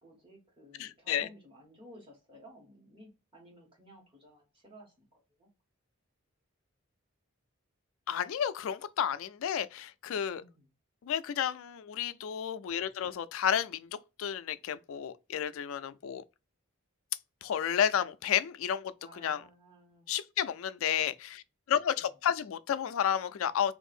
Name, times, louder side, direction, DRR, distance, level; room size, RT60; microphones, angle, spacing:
voice 1, 0.0-5.5 10.3-10.7 17.9-18.0 19.0-20.1 21.9-22.1, equal, 25° right, 1.4 m, -56 dB
voice 2, 0.8-1.3 8.1-10.4 11.0-13.9 14.2-16.2 17.4-19.4 20.1-21.4 21.7-23.7, left 9 dB, 70° left, 0.3 m, -31 dB
2.7 x 2.5 x 4.2 m
head